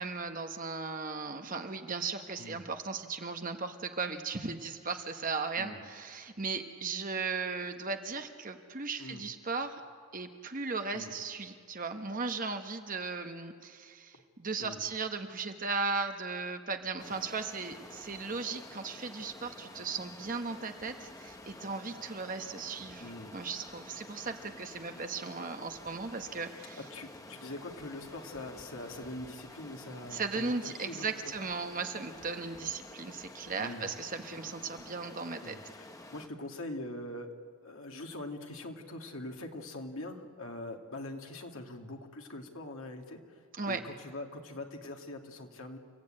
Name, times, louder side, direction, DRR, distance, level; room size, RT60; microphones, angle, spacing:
voice 1, 0.0-9.8 10.1-26.8 30.1-35.5 43.6-43.8, right 4 dB, 35° right, 6 dB, 1.1 m, -37 dB
voice 2, 9.0-9.3 10.9-11.1 14.1-14.2 14.6-14.9 23.0-23.4 24.9-25.0 26.1-26.2 26.9-31.3 33.6-33.9 35.4-37.3 37.6-45.8, left 1 dB, 65° left, 3 dB, 2.0 m, -43 dB
Stream, 17.0-36.3, left 1 dB, 15° left, 1.1 m, -50 dB
30.0 x 15.0 x 8.7 m, 2.1 s
head